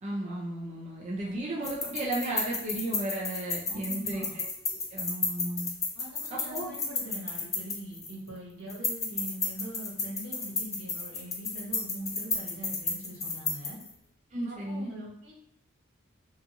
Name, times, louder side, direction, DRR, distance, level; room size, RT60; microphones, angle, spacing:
voice 1, 0.0-5.7 6.3-6.7 14.3-14.9, right 1 dB, 35° right, -5 dB, 0.5 m, -34 dB
voice 2, 1.2-1.6 3.7-4.4 6.0-13.8 14.5-15.3, right 1 dB, 85° right, -4 dB, 1.1 m, -42 dB
sound 1, 1.6-8.3 8.7-13.9, left 4 dB, 15° left, 0.4 m, -33 dB
3.0 x 2.4 x 2.6 m, 0.72 s
head